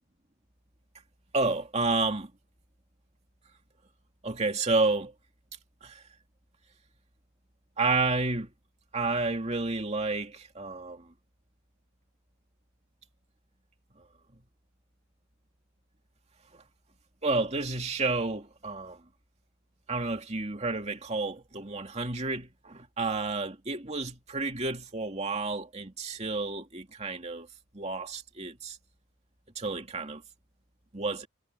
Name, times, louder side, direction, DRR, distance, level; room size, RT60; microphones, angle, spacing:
voice 1, 1.3-2.3 4.2-5.1 5.8-6.0 7.8-8.5 8.9-11.1 17.2-19.0 19.9-27.5 27.7-28.8 29.6-30.2 30.9-31.3, right 3 dB, 30° right, 2.5 m, -30 dB
head